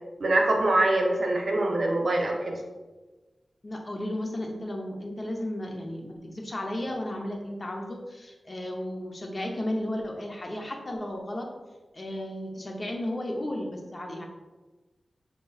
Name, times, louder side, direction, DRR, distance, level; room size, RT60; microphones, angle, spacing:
voice 1, 0.2-2.6, right 2 dB, 70° right, 0 dB, 0.7 m, -24 dB
voice 2, 3.6-11.5 11.9-14.2, left 1 dB, 40° left, 1 dB, 0.7 m, -34 dB
6.3 x 2.9 x 2.3 m, 1.2 s
wide cardioid pair, 70°, 0 cm